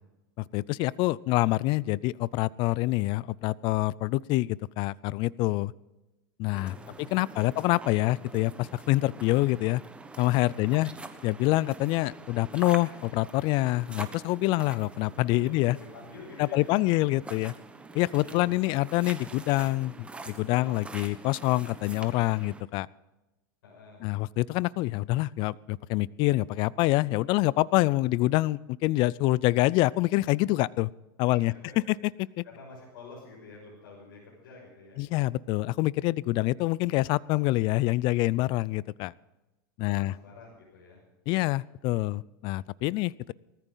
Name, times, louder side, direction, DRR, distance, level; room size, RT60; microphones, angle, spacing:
voice 1, 0.4-5.7 6.4-9.8 10.2-10.9 11.2-15.8 16.4-17.5 17.9-22.9 24.0-30.9 31.2-31.5 32.4-32.5 35.0-39.1 39.8-40.1 41.3-43.3, left 19 dB, 45° left, 23 dB, 0.4 m, -26 dB
sound 1, 6.5-22.6, right 3 dB, 10° right, 1.3 m, -45 dB
voice 2, 6.6-7.6 10.6-10.9 15.4-16.8 18.2-18.6 23.6-24.1 31.3-31.9 32.4-35.0 39.8-41.0, left 3 dB, 75° left, -3 dB, 6.3 m, -49 dB
19.5 x 14.0 x 3.9 m, 1.0 s
supercardioid pair, 125°, 12 cm